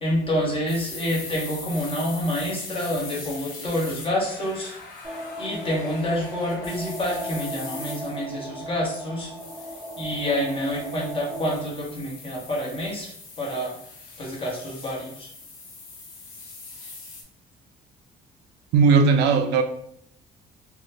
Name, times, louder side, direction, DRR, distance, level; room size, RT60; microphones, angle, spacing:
voice 1, 0.0-4.7 5.4-9.3 10.0-13.1 13.4-13.8 14.2-15.3, equal, 30° left, -3 dB, 1.1 m, -27 dB
sound 1, 0.7-8.3 9.3-17.2, left 3 dB, 60° left, 0.8 m, -41 dB
sound 2, 5.0-11.6, right 1 dB, 10° right, 0.6 m, -37 dB
voice 2, 18.7-19.6, right 5 dB, 80° right, 7 dB, 0.4 m, -17 dB
2.7 x 2.3 x 3.3 m, 0.70 s
cardioid pair, 110°, 17 cm